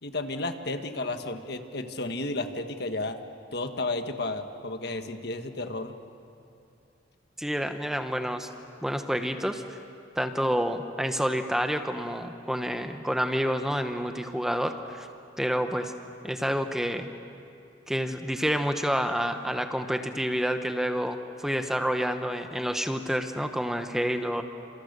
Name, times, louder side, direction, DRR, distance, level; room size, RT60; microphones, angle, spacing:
voice 1, 0.0-3.2 3.5-5.9, left 2 dB, 60° left, 7 dB, 1.5 m, -32 dB
voice 2, 7.4-8.5 8.8-9.8 10.2-15.1 15.4-15.9 16.2-17.1 17.9-24.4, equal, ahead, 6 dB, 1.0 m, -28 dB
30.0 x 27.5 x 6.8 m, 2.6 s
head